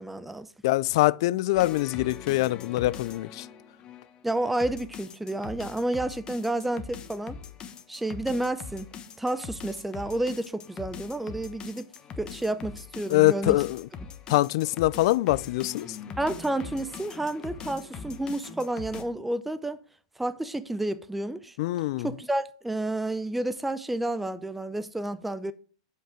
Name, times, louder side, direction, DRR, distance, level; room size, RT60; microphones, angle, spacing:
voice 1, 0.0-0.5 4.2-7.4 7.9-8.9 9.2-11.9 12.2-13.6 16.2-19.8 20.2-21.6 22.0-25.5, right 1 dB, 5° right, 0.5 m, -30 dB
voice 2, 0.6-3.5 13.1-13.9 14.3-16.0 21.6-22.1, left 18 dB, 60° left, 0.4 m, -24 dB
sound 1, 1.6-19.0, left 6 dB, 30° left, 1.1 m, -42 dB
7.8 x 5.5 x 4.9 m
hypercardioid pair, 115°, 3 cm